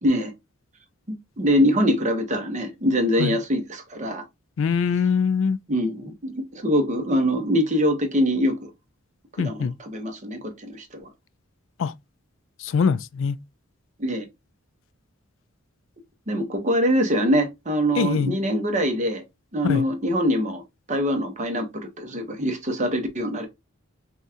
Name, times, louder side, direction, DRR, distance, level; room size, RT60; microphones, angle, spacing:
voice 1, 1.4-4.2 5.7-8.7 9.4-11.1 14.0-14.3 16.3-19.2 19.5-20.6 20.9-23.5, equal, 35° right, 1.0 m, -23 dB
voice 2, 4.6-5.6 9.4-9.7 11.8-11.9 12.6-13.4 18.0-18.4 19.6-19.9, left 6 dB, 60° left, 0.3 m, -23 dB
5.4 x 2.4 x 2.8 m
head